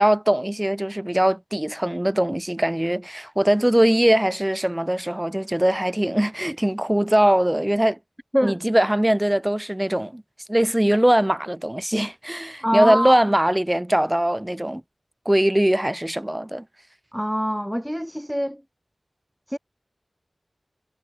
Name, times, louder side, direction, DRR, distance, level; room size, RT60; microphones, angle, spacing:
voice 1, 0.0-8.0 8.4-10.2 10.5-14.8 15.3-16.6, right 1 dB, 15° right, 4.0 m, -21 dB
voice 2, 12.6-13.2 17.1-18.6 19.5-19.6, equal, ahead, 1.3 m, -24 dB
wide cardioid pair, 40°, 0 cm